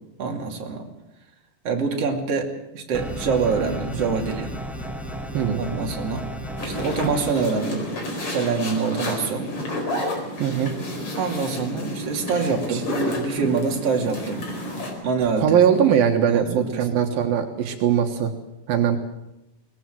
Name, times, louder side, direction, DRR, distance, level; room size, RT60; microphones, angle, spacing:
voice 1, 0.2-0.9 1.7-4.5 5.6-6.3 6.6-7.9 8.3-9.5 11.2-14.5 15.0-15.6 16.3-16.8, right 5 dB, 45° right, 1 dB, 3.5 m, -25 dB
sound 1, 2.9-7.3, equal, ahead, 1.4 m, -33 dB
sound 2, 6.6-14.9, left 1 dB, 40° left, 5.3 m, -30 dB
voice 2, 10.4-10.7 12.7-12.8 15.4-18.3 18.7-19.0, right 8 dB, 80° right, 4 dB, 3.2 m, -20 dB
23.0 x 19.0 x 7.8 m, 0.90 s
omnidirectional pair, 4.1 m